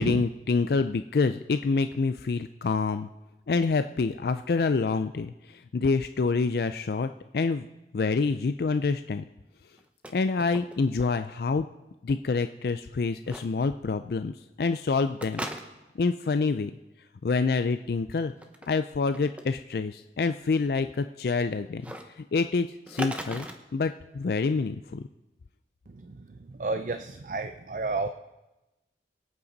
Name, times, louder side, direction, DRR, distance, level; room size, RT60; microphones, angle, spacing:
voice 1, 0.0-3.1 3.5-7.7 7.9-9.2 10.1-11.7 12.0-15.5 16.0-16.7 17.2-18.3 18.7-21.8 22.2-23.5 23.7-25.0, left 4 dB, 60° left, 10 dB, 0.4 m, -27 dB
sound 1, 9.8-10.1 10.4-11.1 11.3-11.4 13.3-13.5 15.2-16.0 18.3-18.7 19.1-19.5 21.8-22.0 22.9-23.6, right 1 dB, 5° right, 0.8 m, -37 dB
voice 2, 26.6-28.1, right 3 dB, 45° right, 8 dB, 0.5 m, -30 dB
23.5 x 8.6 x 4.0 m, 1.0 s
head